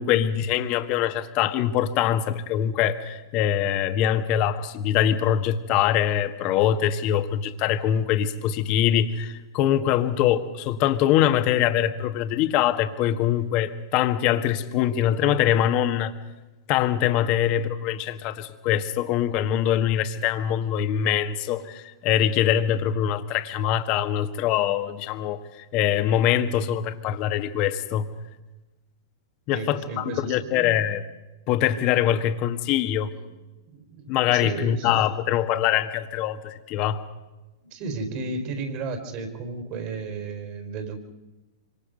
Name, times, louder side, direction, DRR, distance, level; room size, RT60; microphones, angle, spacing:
voice 1, 0.0-16.1 16.7-28.1 29.5-31.0 31.5-33.1 34.1-37.0, left 10 dB, 45° left, 9 dB, 1.7 m, -23 dB
voice 2, 29.5-30.9 33.1-33.3 33.7-35.0 37.6-41.0, right 4 dB, 45° right, 5 dB, 4.4 m, -34 dB
26.0 x 25.0 x 5.3 m, 1.1 s
hypercardioid pair, 110°, 2 cm